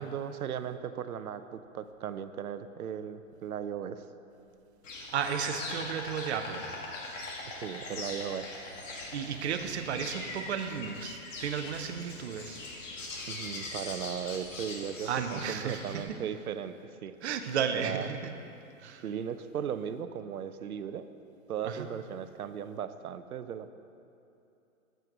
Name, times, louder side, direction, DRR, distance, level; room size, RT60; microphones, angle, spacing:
voice 1, 0.0-4.0 7.5-8.5 13.3-17.1 17.7-18.1 19.0-21.1 21.5-23.7, right 8 dB, 85° right, 11 dB, 0.7 m, -37 dB
Insect, 4.8-16.0, left 2 dB, 60° left, 1.8 m, -41 dB
voice 2, 5.0-6.7 8.9-12.6 15.1-16.0 17.2-18.3 18.8-19.0 21.6-21.9, right 7 dB, 50° right, 7 dB, 0.8 m, -34 dB
7.9 x 7.7 x 6.0 m, 2.8 s
hypercardioid pair, 150°, 42 cm